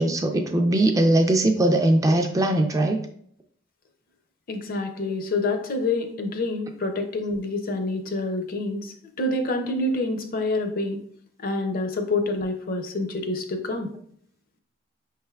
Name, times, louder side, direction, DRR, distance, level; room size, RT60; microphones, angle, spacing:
voice 1, 0.0-3.0, right 1 dB, 15° right, 4 dB, 0.3 m, -20 dB
voice 2, 4.5-11.0 11.4-13.9, left 2 dB, 45° left, 5 dB, 0.5 m, -27 dB
5.1 x 3.3 x 2.3 m, 0.63 s
head